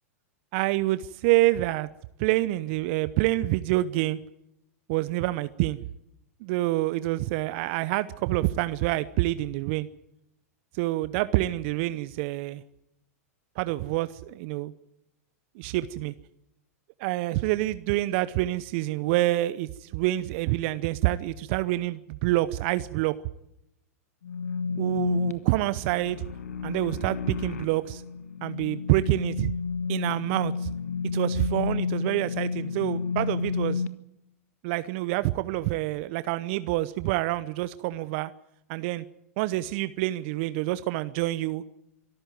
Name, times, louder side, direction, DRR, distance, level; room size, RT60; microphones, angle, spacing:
voice 1, 0.5-1.9 2.2-4.2 4.9-5.8 6.4-9.9 10.7-12.6 13.6-14.7 15.6-16.1 17.0-23.1 24.8-26.2 26.6-28.0 28.4-29.5 29.9-30.7 31.1-33.8 34.6-38.3 38.7-39.0 39.4-41.6, right 17 dB, 50° right, 15 dB, 0.8 m, -27 dB
sound 1, 24.2-33.9, left 5 dB, 75° left, 1.3 m, -31 dB
24.5 x 14.0 x 9.3 m, 0.83 s
hypercardioid pair, 100°, 8 cm